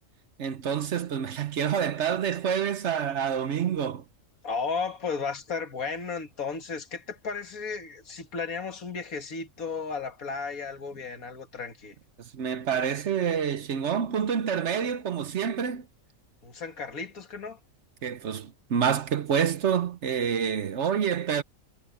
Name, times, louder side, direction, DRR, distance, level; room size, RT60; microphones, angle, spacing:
voice 1, 0.4-4.0 12.2-15.9 18.0-21.4, right 8 dB, 60° right, 1.0 m, -27 dB
voice 2, 4.4-11.9 16.4-17.6, left 5 dB, 80° left, 2.3 m, -34 dB
omnidirectional pair, 1.5 m